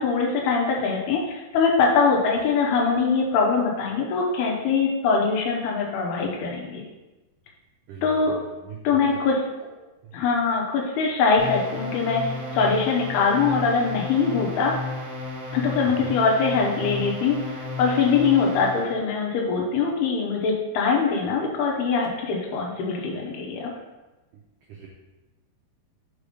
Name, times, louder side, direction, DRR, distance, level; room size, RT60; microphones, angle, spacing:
voice 1, 0.0-6.8 8.0-8.3 8.8-9.4 10.1-14.7 15.5-23.7, left 5 dB, 75° left, -1 dB, 2.9 m, -23 dB
voice 2, 7.9-9.2 9.6-9.7 10.0-10.1 15.8-16.1 24.7-24.9, right 6 dB, 90° right, -2 dB, 1.8 m, -41 dB
sound 1, 11.4-18.9, left 3 dB, 60° right, 2.2 m, -33 dB
6.7 x 4.8 x 5.1 m, 1.1 s
omnidirectional pair, 4.9 m